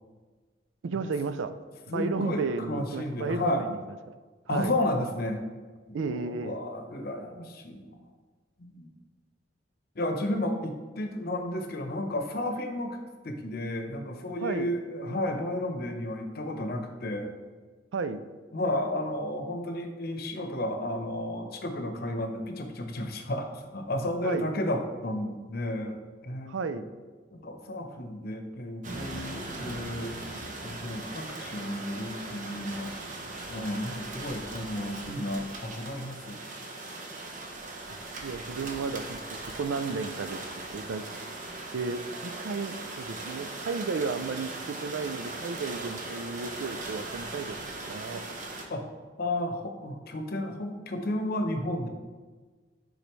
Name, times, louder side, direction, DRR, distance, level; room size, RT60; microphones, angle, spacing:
voice 1, 0.8-1.5 1.9-3.8 4.5-4.7 5.9-6.6 14.4-14.7 17.9-18.2 24.2-24.5 26.5-26.9 38.2-40.4 40.7-41.1 41.7-48.3, right 4 dB, 80° right, 11 dB, 0.4 m, -33 dB
voice 2, 1.9-3.6 4.5-5.4 6.0-7.9 8.6-8.9 10.0-13.0 13.2-17.3 18.5-26.0 26.2-26.9 27.3-30.2 30.6-32.9 33.5-36.4 48.7-48.9 49.2-51.9, left 1 dB, 55° left, 5 dB, 0.8 m, -32 dB
sound 1, 28.8-48.7, right 2 dB, 45° right, 0.8 m, -39 dB
9.9 x 4.0 x 3.1 m, 1.4 s
head